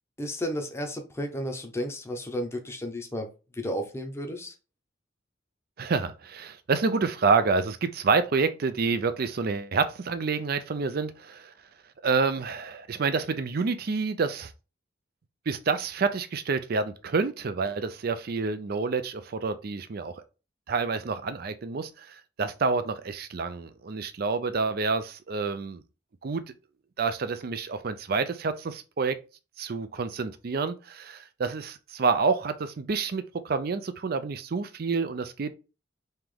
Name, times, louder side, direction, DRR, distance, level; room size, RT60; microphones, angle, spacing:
voice 1, 0.2-3.3 3.5-4.5, equal, 15° left, 0.7 m, -33 dB
voice 2, 5.8-11.5 12.0-14.5 15.5-20.2 20.7-25.8 26.2-26.4 27.0-29.2 29.6-35.5, right 4 dB, 50° right, 0.5 m, -28 dB
3.2 x 3.0 x 3.7 m
head